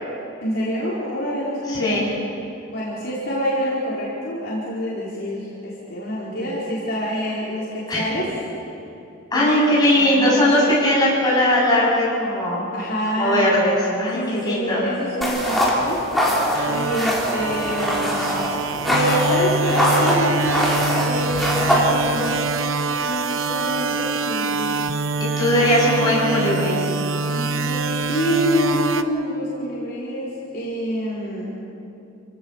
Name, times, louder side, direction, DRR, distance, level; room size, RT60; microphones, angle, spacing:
voice 1, 0.4-2.1 2.7-8.3 9.3-9.5 9.9-10.5 12.7-13.4 14.1-22.5 23.0-24.8 27.3-31.6, equal, 50° left, -7 dB, 4.5 m, -26 dB
voice 2, 1.7-2.1 7.9-8.1 9.3-12.6 13.2-14.9 25.4-26.8, left 1 dB, 20° left, -6 dB, 8.0 m, -19 dB
sound 1, 15.2-22.4, equal, ahead, 3.7 m, -23 dB
sound 2, 16.5-29.0, right 4 dB, 80° right, 0.9 m, -25 dB
28.5 x 17.5 x 7.2 m, 2.7 s
head